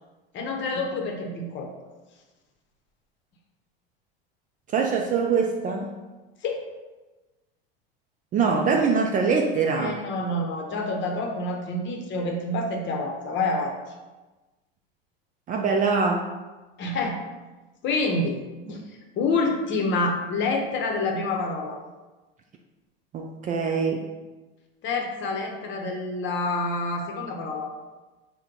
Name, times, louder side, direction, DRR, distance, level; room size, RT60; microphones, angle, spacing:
voice 1, 0.3-1.7 6.4-6.7 9.8-13.8 16.8-17.2 17.8-18.8 19.2-21.8 24.8-27.7, left 2 dB, 40° left, 1 dB, 0.8 m, -27 dB
voice 2, 4.7-5.9 8.3-10.0 15.5-16.3 23.1-24.1, right 5 dB, 30° right, 2 dB, 0.3 m, -23 dB
4.4 x 2.2 x 3.7 m, 1.2 s
hypercardioid pair, 95°, 30 cm